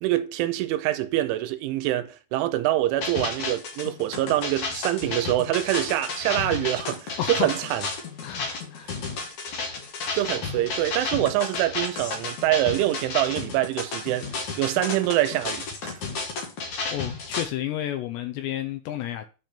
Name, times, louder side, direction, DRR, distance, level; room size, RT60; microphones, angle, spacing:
voice 1, 0.0-7.8 8.8-8.9 10.1-16.0, right 14 dB, 85° right, 3.1 m, -25 dB
sound 1, 3.0-17.4, left 4 dB, 65° left, 1.9 m, -32 dB
voice 2, 7.2-7.6 8.2-8.9 16.9-19.3, left 12 dB, 85° left, 2.5 m, -31 dB
9.3 x 4.4 x 5.1 m
omnidirectional pair, 5.6 m